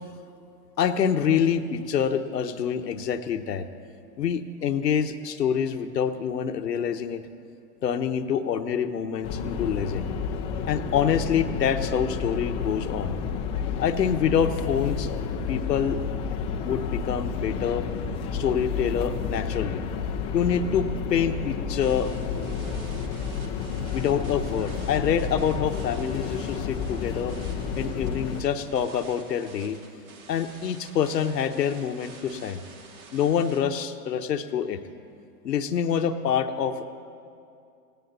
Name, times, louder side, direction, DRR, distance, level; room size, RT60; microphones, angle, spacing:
voice 1, 0.8-3.7 4.2-7.2 7.8-10.1 10.7-13.2 13.8-15.1 15.5-16.0 16.6-17.9 18.3-19.8 20.3-22.1 23.9-27.3 27.8-29.8 30.3-32.6 33.1-34.8 35.4-36.9, left 8 dB, 85° left, 7 dB, 1.1 m, -26 dB
sound 1, 9.2-28.4, left 6 dB, 15° left, 0.4 m, -31 dB
sound 2, 21.8-33.6, right 4 dB, 60° right, 2.6 m, -49 dB
17.5 x 17.0 x 4.0 m, 2.4 s
hypercardioid pair, 125°, 48 cm